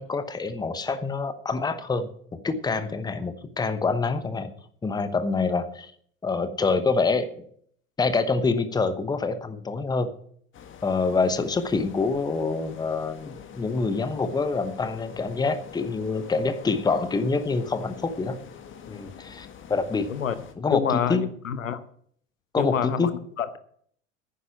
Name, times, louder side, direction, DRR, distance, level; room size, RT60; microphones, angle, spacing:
voice 1, 0.0-2.1 2.4-4.5 4.8-5.9 6.2-7.3 8.0-10.1 10.8-18.4 18.9-20.1 20.6-21.2 22.5-23.1, left 4 dB, 10° left, 11 dB, 1.0 m, -26 dB
sound 1, 10.5-20.5, left 8 dB, 30° left, 1.7 m, -45 dB
voice 2, 20.7-21.8 22.6-23.1 23.4-23.6, left 8 dB, 75° left, 13 dB, 1.0 m, -26 dB
10.0 x 9.6 x 7.2 m, 0.62 s
figure-of-eight pair, 80°, 40 cm